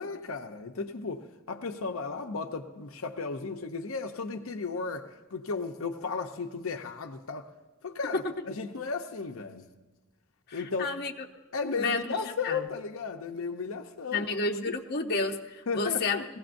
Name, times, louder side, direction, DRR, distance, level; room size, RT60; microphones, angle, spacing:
voice 1, 0.0-7.5 7.8-9.7 10.5-10.9 11.5-14.3 14.6-14.7 15.7-16.2, left 4 dB, 75° left, 4 dB, 0.7 m, -35 dB
voice 2, 10.5-11.1 11.7-12.6 14.1-16.2, left 3 dB, 50° left, 2 dB, 0.8 m, -31 dB
20.0 x 16.0 x 2.6 m, 1.2 s
head